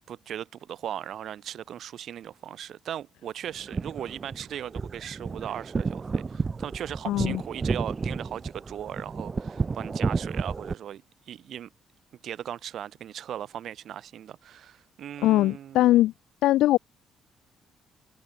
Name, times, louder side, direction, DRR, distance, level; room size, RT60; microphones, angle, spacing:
voice 1, 0.1-11.7 12.2-15.9, right 10 dB, 70° right, 5.4 m, -38 dB
sound 1, 3.5-10.7, right 4 dB, 30° right, 4.7 m, -31 dB
voice 2, 7.1-7.4 15.2-16.1 16.4-16.8, left 15 dB, 90° left, 1.0 m, -21 dB
cardioid pair, 90°, 0 cm